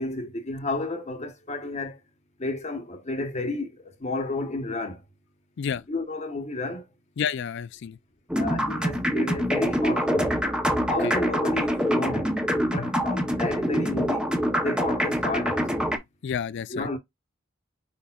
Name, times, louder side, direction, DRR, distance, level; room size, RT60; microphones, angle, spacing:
voice 1, 0.0-2.0 2.4-5.0 5.9-6.8 8.4-10.4 10.9-14.3 14.6-15.7 16.7-17.0, left 2 dB, 30° left, 0.9 m, -31 dB
voice 2, 7.2-8.0 10.9-11.1 12.8-12.9 16.2-16.9, left 7 dB, 60° left, 0.4 m, -30 dB
sound 1, 8.3-16.0, equal, 5° right, 0.7 m, -25 dB
4.8 x 4.2 x 2.3 m
head